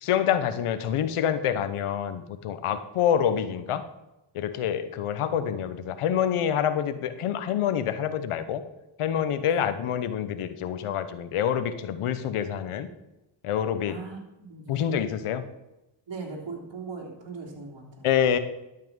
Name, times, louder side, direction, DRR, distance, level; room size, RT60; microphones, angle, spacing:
voice 1, 0.0-3.8 4.3-8.6 9.0-12.9 13.4-14.0 14.7-15.4 18.0-18.4, left 9 dB, 85° left, 12 dB, 1.1 m, -26 dB
voice 2, 13.9-15.0 16.1-18.3, right 4 dB, 60° right, -2 dB, 3.3 m, -40 dB
12.5 x 5.8 x 7.3 m, 0.95 s
supercardioid pair, 45°, 50 cm